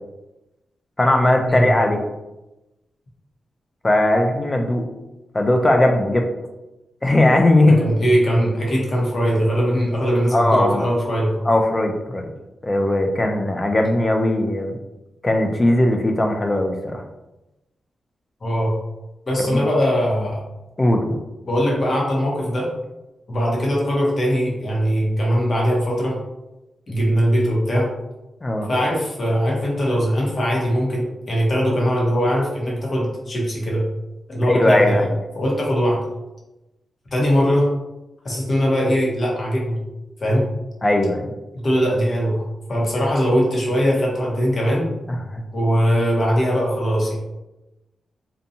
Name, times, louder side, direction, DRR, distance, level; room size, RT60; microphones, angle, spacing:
voice 1, 1.0-2.0 3.8-4.8 5.3-6.3 7.0-7.8 10.3-10.8 11.5-12.3 12.6-14.8 15.2-17.0 19.4-19.6 20.8-21.2 28.4-28.7 34.5-35.1 40.8-41.3 45.3-45.4, left 1 dB, 25° left, 4 dB, 0.3 m, -18 dB
voice 2, 7.7-11.4 18.4-18.7 19.3-20.4 21.5-22.7 23.3-26.2 26.9-27.9 28.7-33.8 34.3-35.1 35.3-36.0 37.1-37.7 38.2-39.8 40.2-40.5 41.5-44.9 45.5-47.2, equal, 45° left, -3 dB, 0.9 m, -20 dB
2.6 x 2.2 x 2.7 m, 0.99 s
wide cardioid pair, 105°, 0 cm